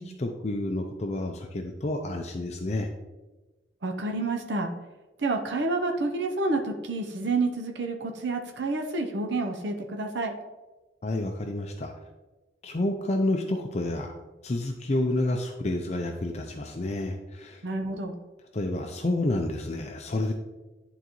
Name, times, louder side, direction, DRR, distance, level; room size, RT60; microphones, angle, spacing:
voice 1, 0.0-2.9 11.0-11.9 12.6-14.1 14.4-17.6 18.5-20.3, left 1 dB, 35° left, 3 dB, 0.5 m, -29 dB
voice 2, 3.8-4.7 5.2-10.3 17.6-18.1, right 3 dB, 70° right, 3 dB, 0.7 m, -29 dB
10.5 x 3.9 x 3.0 m, 1.1 s
head